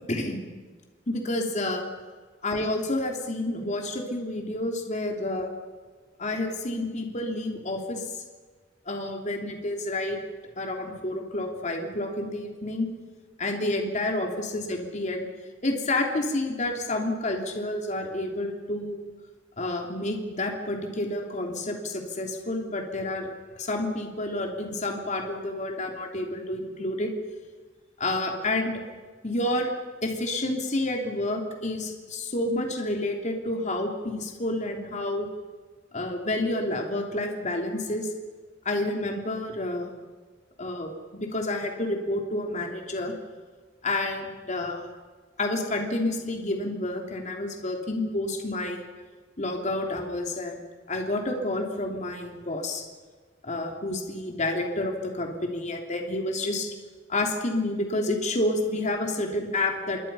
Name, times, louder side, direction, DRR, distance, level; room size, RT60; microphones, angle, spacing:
voice 1, 0.1-0.4 1.1-1.8 2.4-5.5 6.2-8.0 8.8-10.2 10.6-12.9 13.4-15.2 15.6-19.1 19.6-23.3 23.5-27.1 28.0-28.8 29.2-29.7 30.0-35.3 35.9-38.1 38.6-39.9 40.6-43.1 43.8-44.9 45.4-48.8 49.4-50.6 50.9-52.9 53.4-56.7 57.1-60.0, left 2 dB, 40° left, 2 dB, 3.3 m, -29 dB
27.0 x 22.5 x 5.7 m, 1.4 s
head